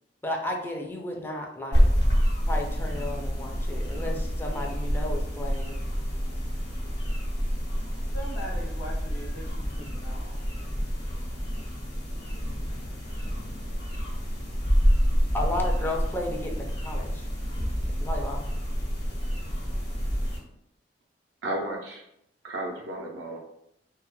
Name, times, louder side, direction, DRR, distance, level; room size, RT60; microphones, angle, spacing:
voice 1, 0.2-1.9 2.4-5.8 15.3-17.3 18.0-18.5, left 1 dB, 10° left, 1 dB, 0.3 m, -33 dB
sound 1, 1.7-20.4, equal, 65° left, 1.0 m, -28 dB
voice 2, 8.1-10.4, equal, 85° left, -3 dB, 0.6 m, -41 dB
voice 3, 21.4-22.0 22.4-23.4, right 1 dB, 80° right, -1 dB, 0.4 m, -33 dB
2.2 x 2.0 x 2.9 m, 0.78 s
head